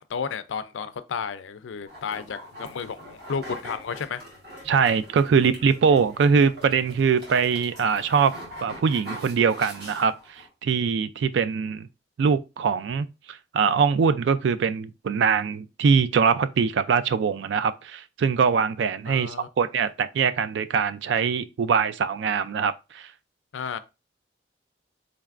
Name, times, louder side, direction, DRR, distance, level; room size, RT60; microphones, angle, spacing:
voice 1, 0.1-4.2 19.1-19.5 23.5-23.8, left 6 dB, 90° left, 0.4 m, -32 dB
sound 1, 1.9-10.5, equal, 55° right, 1.8 m, -43 dB
voice 2, 4.7-8.4 8.6-11.9 12.2-23.1, right 6 dB, 75° right, 0.3 m, -23 dB
3.9 x 3.3 x 2.4 m
head